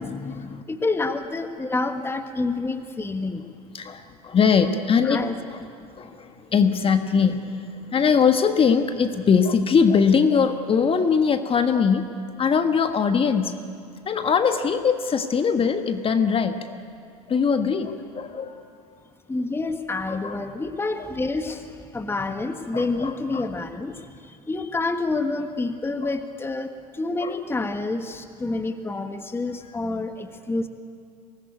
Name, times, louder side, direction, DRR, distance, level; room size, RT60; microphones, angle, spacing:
voice 1, 0.0-0.6 3.7-5.2 5.5-5.6 6.0-12.1 12.4-13.5 14.0-16.8 17.3-18.6 20.1-20.4 22.7-23.5 27.2-27.4, left 6 dB, 25° left, 8 dB, 1.5 m, -21 dB
voice 2, 0.7-3.4 5.0-5.3 19.3-21.6 21.9-24.0 24.5-30.7, left 3 dB, 10° left, 8 dB, 1.5 m, -28 dB
24.5 x 19.5 x 9.5 m, 2.4 s
hypercardioid pair, 80°, 20 cm